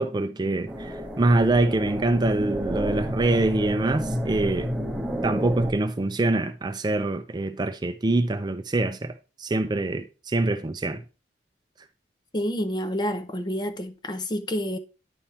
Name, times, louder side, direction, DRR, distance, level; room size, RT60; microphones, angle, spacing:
voice 1, 0.0-4.7 5.2-11.0, right 2 dB, 25° right, 0.4 m, -25 dB
sound 1, 0.7-5.7, equal, 5° right, 1.4 m, -30 dB
voice 2, 12.3-14.8, equal, 25° left, 0.6 m, -28 dB
10.0 x 3.6 x 4.2 m
head